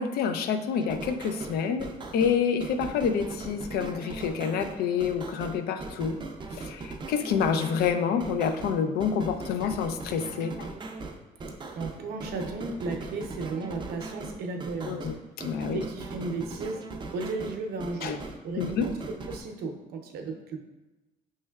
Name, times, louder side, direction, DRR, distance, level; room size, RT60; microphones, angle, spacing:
voice 1, 0.0-6.2 6.5-10.7 14.8-15.8 18.0-18.2 18.6-18.9, left 6 dB, 70° left, 8 dB, 0.4 m, -28 dB
sound 1, 0.7-19.4, right 3 dB, 30° right, 0.5 m, -39 dB
voice 2, 11.7-15.1 15.7-18.9 19.3-20.6, right 3 dB, 70° right, 3 dB, 0.6 m, -35 dB
5.4 x 3.2 x 2.3 m, 1.1 s
cardioid pair, 110°, 17 cm